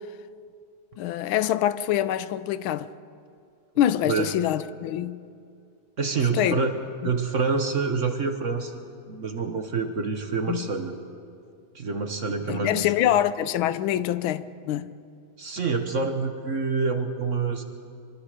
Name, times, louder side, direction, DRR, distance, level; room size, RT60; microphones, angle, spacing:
voice 1, 1.0-2.9 3.8-5.2 6.3-6.5 10.5-10.7 12.5-14.9, left 11 dB, 80° left, 1.5 m, -25 dB
voice 2, 6.0-6.8 7.0-11.0 11.7-12.9 15.4-17.6, right 4 dB, 45° right, 1.2 m, -27 dB
24.5 x 24.0 x 5.0 m
omnidirectional pair, 2.2 m